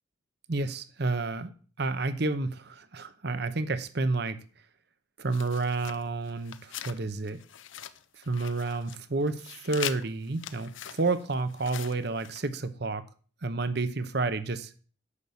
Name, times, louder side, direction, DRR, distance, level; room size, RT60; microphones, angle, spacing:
voice 1, 0.5-1.5 1.8-4.4 5.2-7.4 8.3-13.0 13.4-14.7, right 3 dB, 55° right, 0.9 m, -30 dB
sound 1, 5.3-7.0 7.3-9.0 9.2-12.4, left 10 dB, 75° left, 0.8 m, -41 dB
9.8 x 6.6 x 7.0 m
head